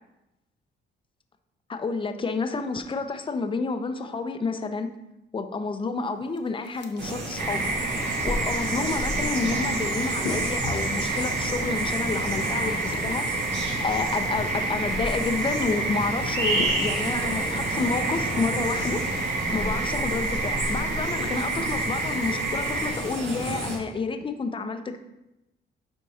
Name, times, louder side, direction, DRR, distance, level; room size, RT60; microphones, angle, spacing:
voice 1, 1.7-4.9 5.3-7.7 8.0-13.3 13.5-19.1 19.5-25.0, left 4 dB, 25° left, 7 dB, 0.6 m, -29 dB
sound 1, 6.0-22.5, left 5 dB, 65° left, 0.8 m, -43 dB
sound 2, 7.0-23.8, right 2 dB, 65° right, 1.9 m, -32 dB
sound 3, 7.4-22.9, right 2 dB, 40° right, 1.2 m, -29 dB
11.0 x 4.5 x 2.8 m, 0.92 s
cardioid pair, 90°, 20 cm